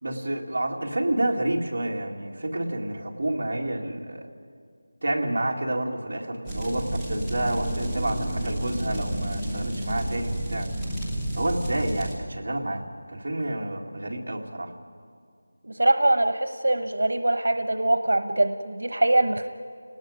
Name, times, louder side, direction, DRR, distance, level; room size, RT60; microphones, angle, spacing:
voice 1, 0.0-4.3 5.0-10.7 11.3-14.7, right 1 dB, 45° right, -1 dB, 2.3 m, -29 dB
digital wildfire, 6.5-12.1, right 1 dB, 5° left, 1.3 m, -30 dB
voice 2, 15.6-19.5, right 1 dB, 85° right, 9 dB, 1.1 m, -23 dB
30.0 x 19.5 x 5.2 m, 2.3 s
figure-of-eight pair, 180°, 0 cm